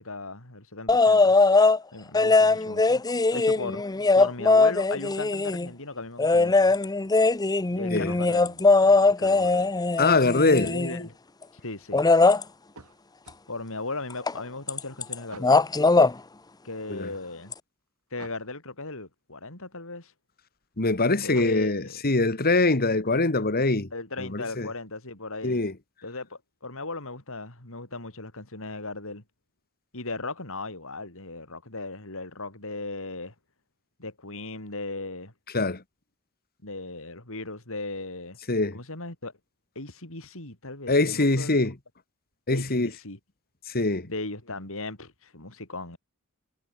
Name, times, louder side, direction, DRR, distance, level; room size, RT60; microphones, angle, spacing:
voice 1, 0.0-1.4 1.9-3.0 3.3-3.8 4.1-6.7 7.7-9.7 10.6-11.2 11.6-12.0 13.5-15.6 16.6-17.5 18.1-20.1 21.2-22.0 23.9-25.6 26.0-29.2 29.9-33.3 34.0-35.3 36.6-38.4 38.7-39.3 39.8-41.6 42.5-43.2 44.0-46.0, left 2 dB, 65° left, 5.3 m, -37 dB
sound 1, 0.9-1.8 2.1-5.7 6.2-11.1 11.9-12.4 14.3-14.4 14.7-15.1 15.4-16.1 17.5-17.6, left 3 dB, 20° left, 0.7 m, -20 dB
voice 2, 10.0-10.7 16.9-17.1 20.8-23.9 24.2-24.7 25.4-25.7 35.5-35.8 38.5-38.8 40.9-41.8 42.5-42.9 43.7-44.1, left 2 dB, 45° left, 2.0 m, -23 dB
sound 2, 12.7-13.4 15.3-15.6 18.2-18.5 21.2-21.8, right 3 dB, 85° right, 6.2 m, -48 dB
head